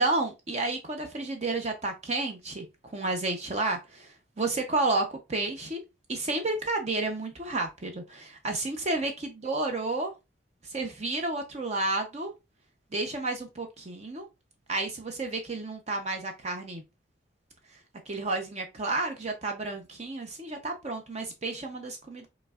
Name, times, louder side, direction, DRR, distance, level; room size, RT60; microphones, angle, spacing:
voice 1, 0.0-2.6 2.9-4.1 4.4-5.8 6.1-10.1 10.7-12.3 12.9-14.3 14.7-16.8 18.1-22.3, right 2 dB, 35° right, 0.7 m, -31 dB
5.3 x 3.1 x 2.3 m
head